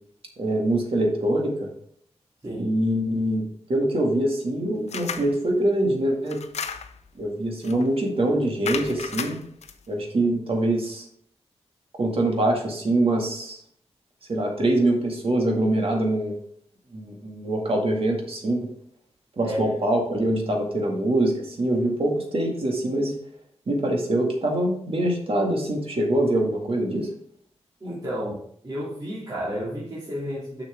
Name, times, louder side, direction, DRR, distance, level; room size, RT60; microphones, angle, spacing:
voice 1, 0.4-1.7 2.6-3.4 3.7-6.4 7.2-9.4 9.9-11.1 12.0-13.6 14.3-16.4 16.9-18.7 19.4-23.1 23.7-27.1, right 1 dB, 55° right, 0 dB, 2.0 m, -24 dB
sound 1, 4.9-5.3 6.3-7.1 7.6-7.9 8.6-9.7, left 6 dB, 75° left, 0.6 m, -33 dB
voice 2, 19.4-19.7 27.8-28.4 28.6-30.6, equal, 35° right, -8 dB, 2.4 m, -31 dB
6.6 x 6.3 x 3.5 m, 0.64 s
wide cardioid pair, 80°, 11 cm